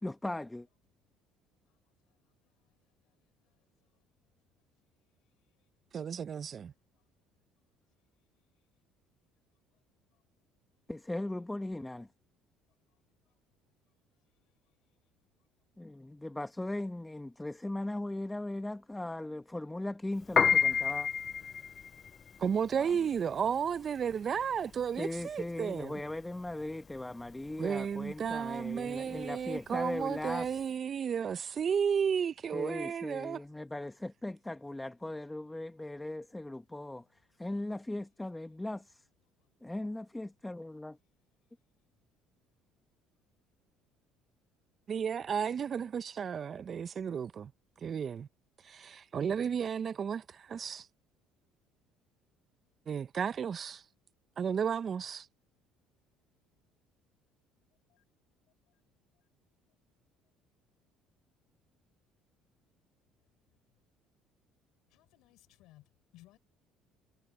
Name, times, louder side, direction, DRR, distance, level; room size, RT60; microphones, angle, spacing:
voice 1, 0.0-0.7 10.9-12.1 15.8-21.1 22.8-22.9 25.0-30.6 32.5-37.0 37.4-39.0 39.6-41.0, left 1 dB, 10° left, 1.5 m, -38 dB
voice 2, 5.9-6.7 22.4-26.0 27.6-33.4 44.9-47.5 47.8-48.3 48.6-50.9 52.9-53.8 54.4-55.3, right 7 dB, 45° right, 0.9 m, -33 dB
Piano, 20.2-30.6, left 6 dB, 40° left, 0.3 m, -32 dB
voice 3, 64.9-65.8 66.1-66.4, left 17 dB, 75° left, 4.9 m, -59 dB
supercardioid pair, 80°, 0 cm